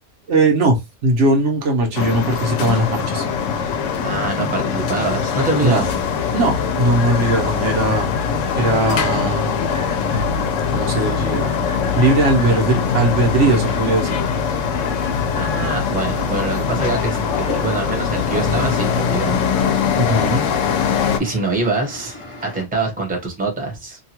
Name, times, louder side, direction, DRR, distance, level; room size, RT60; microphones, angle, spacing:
voice 1, 0.3-3.2 5.6-5.8 6.3-8.1 8.6-9.6 10.7-11.5 12.0-14.2 20.0-20.4, right 2 dB, 75° right, 1.1 m, -19 dB
sound 1, 1.9-21.2, left 6 dB, 90° left, 1.0 m, -22 dB
voice 2, 3.7-5.9 15.3-19.4 20.8-24.0, right 3 dB, 10° right, 0.8 m, -25 dB
sound 2, 6.9-8.9 9.6-10.7 11.4-12.5, left 3 dB, 65° left, 0.9 m, -37 dB
sound 3, 10.9-22.7, left 2 dB, 35° left, 0.6 m, -38 dB
2.8 x 2.3 x 2.9 m
omnidirectional pair, 1.3 m